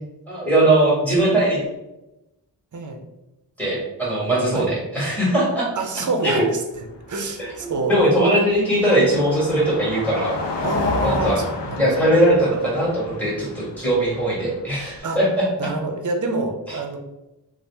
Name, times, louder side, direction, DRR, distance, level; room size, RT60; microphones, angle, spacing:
voice 1, 0.3-1.6 3.6-5.7 6.2-6.4 7.4-10.4 11.0-11.4 11.8-15.4, right 1 dB, 5° left, -7 dB, 1.4 m, -20 dB
voice 2, 2.7-3.0 4.5-4.7 5.8-6.6 7.1-8.0 10.6-11.8 15.0-15.2 15.6-17.0, right 2 dB, 45° right, 4 dB, 0.5 m, -26 dB
Car passing by, 6.7-15.0, left 2 dB, 75° left, 0.5 m, -31 dB
2.7 x 2.0 x 3.2 m, 0.95 s
wide cardioid pair, 60°, 42 cm